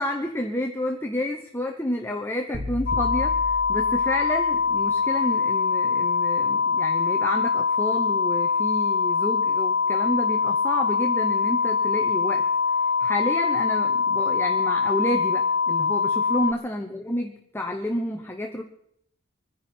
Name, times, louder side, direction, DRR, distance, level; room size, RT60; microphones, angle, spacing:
voice 1, 0.0-12.5 12.7-18.6, left 1 dB, 10° left, 3 dB, 0.8 m, -30 dB
sound 1, 2.5-4.8, left 1 dB, 30° right, 1.4 m, -34 dB
sound 2, 2.9-16.5, left 5 dB, 50° left, 0.7 m, -23 dB
25.5 x 10.5 x 4.4 m, 0.71 s
head